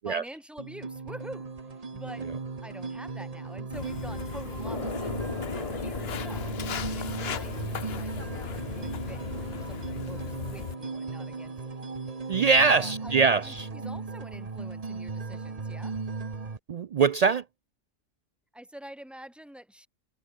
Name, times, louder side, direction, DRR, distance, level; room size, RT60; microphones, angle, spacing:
voice 1, 0.0-2.3 2.6-5.2 5.5-11.9 12.7-16.0 18.5-19.9, right 1 dB, ahead, 3.1 m, -47 dB
sound 1, 0.6-16.6, right 4 dB, 30° right, 1.3 m, -37 dB
Walk footsteps, 3.7-10.7, left 8 dB, 60° left, 1.1 m, -37 dB
sound 2, 4.6-13.9, left 3 dB, 30° left, 1.7 m, -41 dB
voice 2, 12.3-13.6 16.7-17.4, right 5 dB, 80° right, 0.3 m, -22 dB
omnidirectional pair, 1.2 m